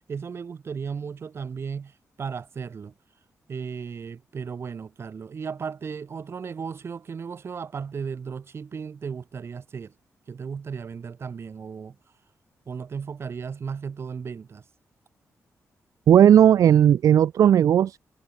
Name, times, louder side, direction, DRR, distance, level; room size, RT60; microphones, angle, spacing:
voice 1, 0.1-2.9 3.5-9.9 10.3-12.0 12.7-14.6, right 6 dB, 50° right, 2.9 m, -35 dB
voice 2, 16.1-18.0, right 9 dB, 80° right, 0.5 m, -16 dB
wide cardioid pair, 150°, 6 cm